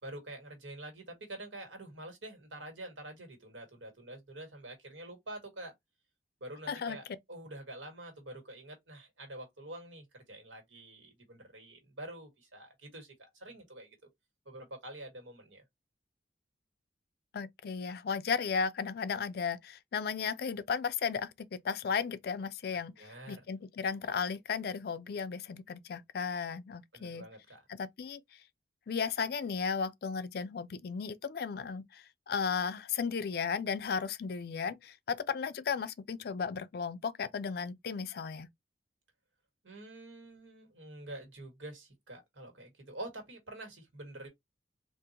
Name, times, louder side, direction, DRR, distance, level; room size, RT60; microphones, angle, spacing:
voice 1, 0.0-5.7 6.4-14.0 14.4-15.6 22.9-23.4 26.9-27.6 39.6-44.3, right 1 dB, 90° right, 1.6 m, -47 dB
voice 2, 6.7-7.0 17.3-27.2 27.7-28.2 28.9-38.5, left 6 dB, 55° left, 0.4 m, -35 dB
3.7 x 2.5 x 2.8 m
head